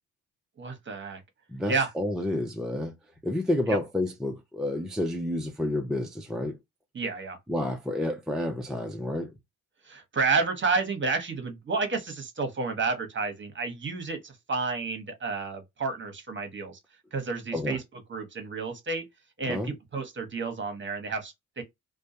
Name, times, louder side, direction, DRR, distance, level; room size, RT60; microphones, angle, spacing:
voice 1, 0.6-1.2 1.7-1.9 3.7-3.8 6.9-7.4 9.8-16.8 17.1-17.8 18.1-19.0 19.4-21.6, right 4 dB, 30° right, 1.0 m, -30 dB
voice 2, 1.5-2.9 3.2-6.6 7.5-9.3 17.5-17.8 19.5-19.7, left 1 dB, ahead, 0.4 m, -30 dB
2.2 x 2.2 x 2.7 m
supercardioid pair, 75°, 38 cm